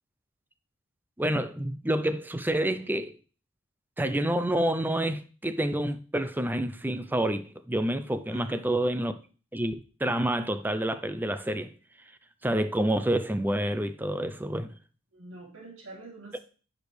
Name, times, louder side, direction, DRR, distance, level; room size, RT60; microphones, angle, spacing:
voice 1, 1.2-3.1 4.0-9.1 9.5-11.7 12.4-14.7, right 1 dB, 10° right, 0.6 m, -28 dB
voice 2, 8.3-8.6 15.1-16.4, right 2 dB, 65° right, 3.0 m, -46 dB
10.5 x 5.1 x 3.3 m
head